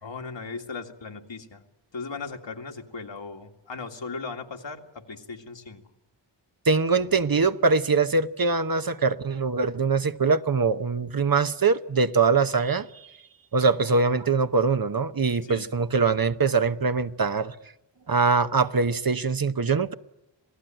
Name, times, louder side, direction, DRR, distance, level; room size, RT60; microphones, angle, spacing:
voice 1, 0.0-1.6 1.9-5.8 15.4-15.7, left 4 dB, 80° left, 2.3 m, -37 dB
voice 2, 6.7-12.9 13.5-17.5 18.1-19.9, right 4 dB, 50° right, 1.0 m, -23 dB
27.0 x 18.0 x 9.0 m
wide cardioid pair, 70°, 44 cm